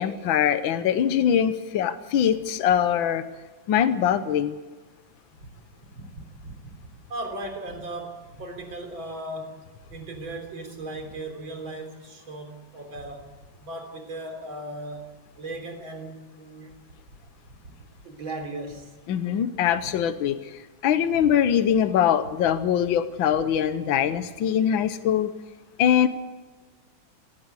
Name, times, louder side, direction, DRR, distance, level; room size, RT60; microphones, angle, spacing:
voice 1, 0.0-3.2 3.7-4.6 19.1-20.5 20.8-25.3 25.8-26.1, left 9 dB, 80° left, 11 dB, 1.7 m, -22 dB
voice 2, 6.0-9.6 9.9-13.3 13.6-15.0 15.4-16.8 17.5-17.8 18.0-18.9 19.7-20.0 20.4-20.5 21.1-21.3 22.5-22.6 23.3-23.5 24.0-24.2, right 2 dB, 80° right, 4 dB, 4.3 m, -37 dB
18.5 x 16.5 x 8.3 m, 1.3 s
omnidirectional pair, 2.1 m